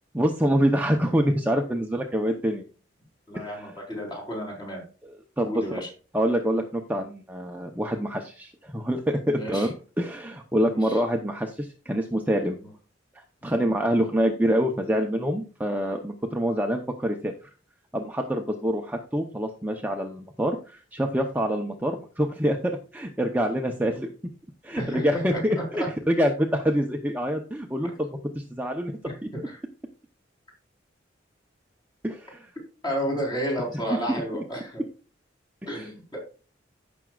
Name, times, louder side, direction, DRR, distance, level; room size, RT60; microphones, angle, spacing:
voice 1, 0.1-2.6 3.3-3.7 5.0-5.8 6.1-12.6 13.1-17.5 17.9-24.1 24.6-28.1 28.3-29.3 32.0-32.5 34.1-34.4 35.8-35.9, equal, 10° right, 3 dB, 0.7 m, -26 dB
voice 2, 3.3-4.8 5.4-5.9 9.3-9.7 10.6-11.0 13.4-13.7 24.8-25.4 25.7-25.9 29.4-29.6 32.8-34.8 35.7-36.2, equal, 20° left, -1 dB, 4.0 m, -32 dB
15.0 x 6.1 x 2.4 m, 0.36 s
head